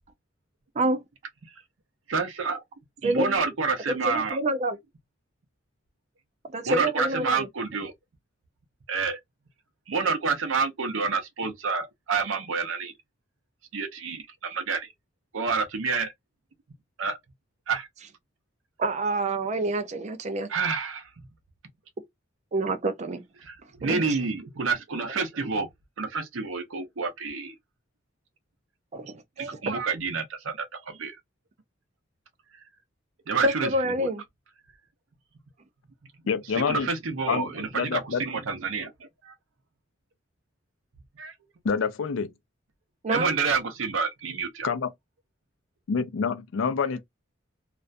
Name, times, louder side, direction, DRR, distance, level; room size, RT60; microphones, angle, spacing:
voice 1, 2.1-2.6 3.0-4.4 6.6-7.9 8.9-9.2 9.9-12.9 13.7-14.9 15.3-16.1 17.0-17.2 17.7-17.9 20.5-21.3 23.4-25.7 26.0-27.5 29.4-31.2 33.3-34.1 36.5-39.3 41.2-41.3 43.1-44.7, right 5 dB, 90° right, 0.6 m, -29 dB
voice 2, 3.0-3.4 3.9-4.8 6.5-7.5 18.8-20.5 22.5-23.2 23.8-24.2 28.9-29.2 33.4-34.2 43.0-43.4, right 1 dB, 35° right, 0.4 m, -27 dB
voice 3, 36.3-36.9 37.3-37.5 37.7-38.2 41.6-42.3 44.6-44.9 45.9-47.0, left 5 dB, 80° left, 0.4 m, -27 dB
2.4 x 2.1 x 2.5 m
head